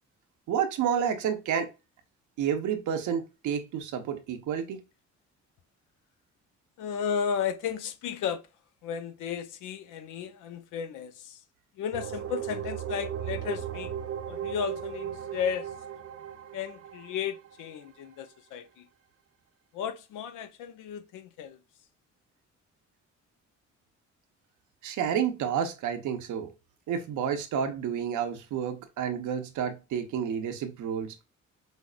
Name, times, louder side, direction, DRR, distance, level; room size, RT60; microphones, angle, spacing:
voice 1, 0.5-1.7 2.4-4.8 24.8-26.5 26.9-31.1, right 8 dB, 85° right, 0.8 m, -30 dB
voice 2, 6.8-8.4 8.8-11.4 11.8-13.9 14.3-15.7 16.5-18.9 19.7-21.6, left 7 dB, 90° left, 0.6 m, -34 dB
sound 1, 11.9-17.6, right 9 dB, 50° right, 0.6 m, -36 dB
5.3 x 2.1 x 2.4 m
cardioid pair, 90°, 30 cm